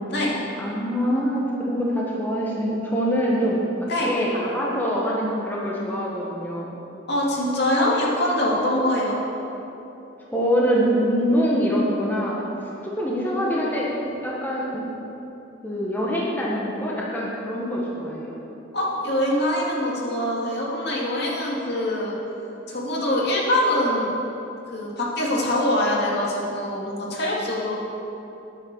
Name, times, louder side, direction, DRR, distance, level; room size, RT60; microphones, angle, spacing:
voice 1, 0.6-3.6 4.0-6.7 10.3-12.5 12.8-13.9 14.2-14.9 15.6-18.4, equal, 10° left, -5 dB, 1.5 m, -24 dB
voice 2, 7.1-9.2 13.2-13.6 14.0-14.1 18.7-22.2 22.7-24.1 24.7-27.8, left 1 dB, 60° left, -4 dB, 2.6 m, -24 dB
10.5 x 9.6 x 6.8 m, 3.0 s
head